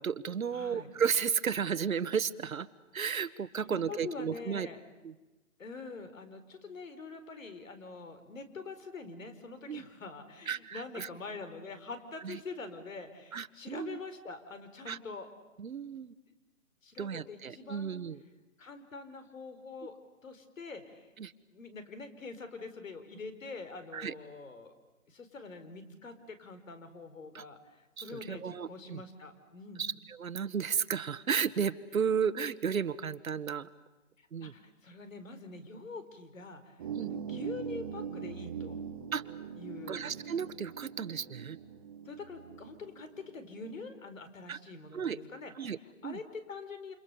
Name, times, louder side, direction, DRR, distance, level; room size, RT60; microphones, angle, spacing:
voice 1, 0.0-2.7 2.9-4.7 5.0-5.1 9.7-9.9 10.5-11.1 12.2-12.4 13.3-14.0 14.9-15.0 15.6-16.1 17.0-18.2 21.2-21.3 23.9-24.1 27.3-27.4 28.0-29.0 29.8-33.7 34.3-34.5 36.9-37.1 39.1-39.2 39.9-41.6 44.5-44.6 44.9-45.2 45.6-45.8 46.0-46.2, right 7 dB, 75° right, 13 dB, 1.5 m, -33 dB
voice 2, 0.5-0.9 3.2-4.8 5.6-15.3 16.8-17.9 18.6-20.0 20.2-21.1 21.5-24.8 25.1-29.9 34.2-38.8 39.6-40.0 42.0-46.9, left 4 dB, 65° left, 10 dB, 4.7 m, -45 dB
sound 1, 36.8-43.8, right 7 dB, 15° right, 0.9 m, -42 dB
29.0 x 28.5 x 7.0 m, 1.1 s
hypercardioid pair, 165°, 41 cm